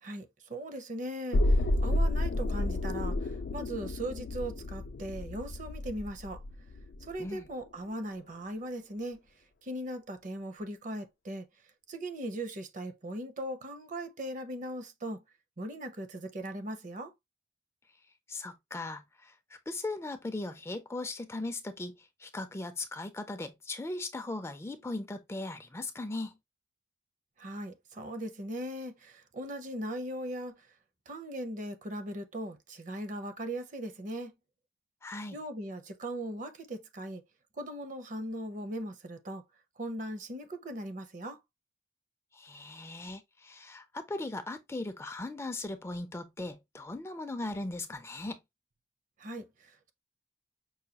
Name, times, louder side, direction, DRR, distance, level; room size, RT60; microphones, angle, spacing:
voice 1, 0.0-6.4 7.0-9.2 9.6-11.5 11.9-15.2 15.6-17.1 27.4-30.7 31.1-34.3 35.3-37.2 37.5-39.4 39.8-41.4 49.2-49.9, right 1 dB, 45° right, 0.6 m, -39 dB
sound 1, 1.3-7.3 7.6-7.7, left 1 dB, 75° left, 0.4 m, -31 dB
voice 2, 18.3-19.4 19.7-26.4 35.0-35.4 42.3-48.4, left 2 dB, 15° left, 0.4 m, -38 dB
5.5 x 2.2 x 2.8 m
head